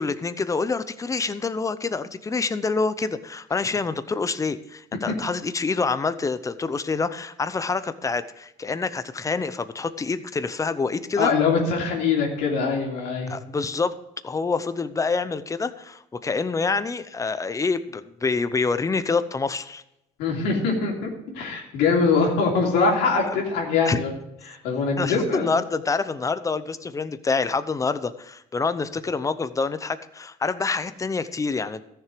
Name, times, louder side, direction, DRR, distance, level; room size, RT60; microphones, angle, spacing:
voice 1, 0.0-11.3 13.3-14.0 14.2-19.8 23.9-24.0 25.0-31.8, left 4 dB, 20° left, 13 dB, 0.7 m, -26 dB
voice 2, 11.2-13.3 20.2-24.1 24.4-25.5, left 4 dB, 90° left, -1 dB, 3.2 m, -23 dB
14.0 x 6.9 x 5.1 m, 0.83 s
cardioid pair, 110°, 17 cm